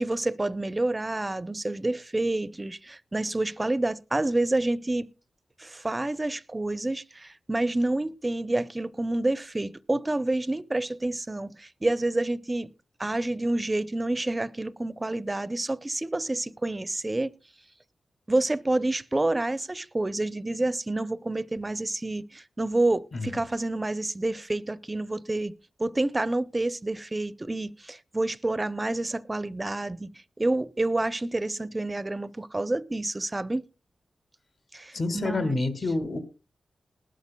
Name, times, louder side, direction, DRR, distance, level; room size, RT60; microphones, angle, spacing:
voice 1, 0.0-5.1 5.6-12.7 13.0-17.3 18.3-25.5 25.8-30.1 30.4-33.6 34.7-35.6, right 2 dB, 25° right, 0.5 m, -28 dB
voice 2, 34.9-36.2, left 2 dB, 65° left, 1.9 m, -28 dB
19.5 x 12.5 x 2.2 m
cardioid pair, 60°, 0 cm